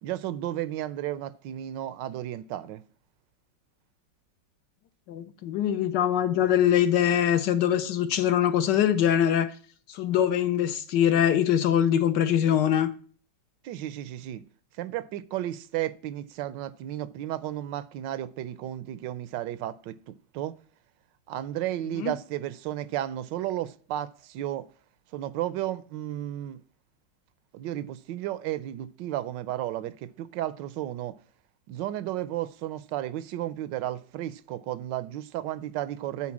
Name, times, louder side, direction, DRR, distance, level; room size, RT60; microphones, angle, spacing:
voice 1, 0.0-2.8 13.6-14.4 14.8-20.5 21.3-24.7 25.1-26.6 27.5-31.2 31.7-36.3, right 13 dB, 80° right, 1.2 m, -33 dB
voice 2, 5.1-9.5 9.9-12.9 21.9-22.1, left 10 dB, 75° left, 1.4 m, -23 dB
8.5 x 4.5 x 7.1 m
omnidirectional pair, 1.9 m